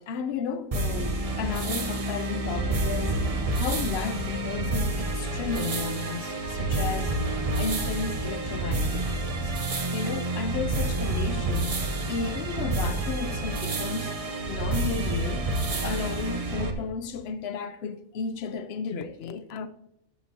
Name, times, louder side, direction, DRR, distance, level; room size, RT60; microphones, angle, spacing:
voice 1, 0.0-9.5 9.9-11.8 12.1-14.1 14.5-15.5 15.8-19.7, left 5 dB, 60° left, 0.7 m, -33 dB
sound 1, 0.7-16.7, right 2 dB, 35° right, 0.7 m, -29 dB
12.5 x 8.0 x 2.8 m
omnidirectional pair, 1.5 m